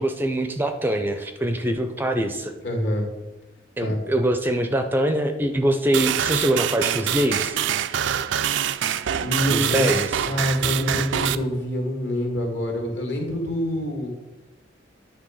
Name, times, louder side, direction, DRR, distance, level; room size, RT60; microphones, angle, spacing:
voice 1, 0.0-2.5 3.8-7.6 9.5-10.1, right 1 dB, 10° right, 6 dB, 0.4 m, -23 dB
voice 2, 2.6-3.1 3.8-4.0 9.2-14.1, equal, 65° left, 1 dB, 1.8 m, -26 dB
sound 1, 5.9-11.4, right 10 dB, 70° right, 0.4 m, -25 dB
9.8 x 3.4 x 6.3 m, 1.1 s
head